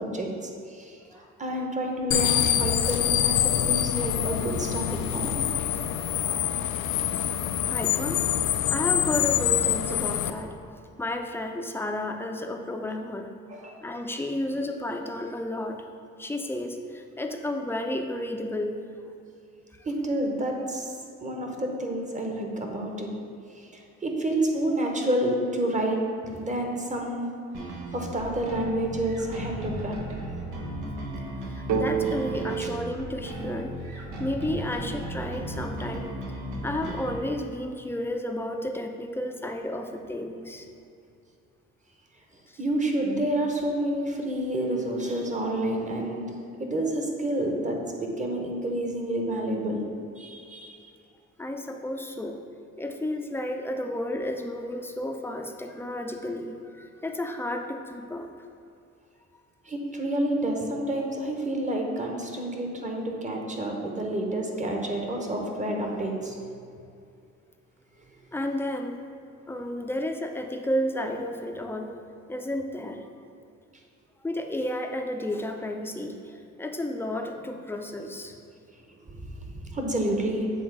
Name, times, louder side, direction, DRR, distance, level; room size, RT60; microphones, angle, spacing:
voice 1, 0.0-5.3 13.5-13.8 19.8-20.9 21.2-23.1 23.5-27.3 27.9-30.0 32.6-32.7 42.6-46.3 46.6-49.8 50.2-50.8 59.7-66.4 79.1-80.5, right 1 dB, 25° right, 1 dB, 1.0 m, -29 dB
sound 1, 2.1-10.3, left 10 dB, 75° left, 0.5 m, -25 dB
voice 2, 7.7-8.3 8.7-13.3 13.8-15.8 16.2-18.8 19.8-19.9 31.4-36.1 36.6-40.7 42.5-42.6 51.4-52.4 52.8-58.3 68.3-69.0 69.5-72.0 72.3-73.1 74.2-78.3, left 1 dB, 10° left, 4 dB, 0.5 m, -32 dB
sound 2, 27.5-37.2, right 1 dB, 85° right, 1.2 m, -36 dB
sound 3, 31.7-35.4, right 6 dB, 70° right, 0.5 m, -32 dB
7.3 x 3.5 x 4.8 m, 2.4 s
cardioid pair, 90°, 30 cm